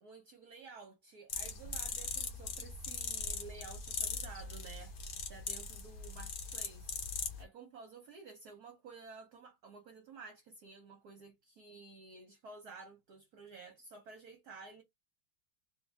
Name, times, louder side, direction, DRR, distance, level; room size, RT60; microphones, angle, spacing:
voice 1, 0.0-4.9 5.2-7.0 7.4-14.8, right 4 dB, 60° right, 1.1 m, -53 dB
sound 1, 1.3-7.4, left 5 dB, 50° left, 1.4 m, -40 dB
3.7 x 2.8 x 3.3 m
omnidirectional pair, 2.2 m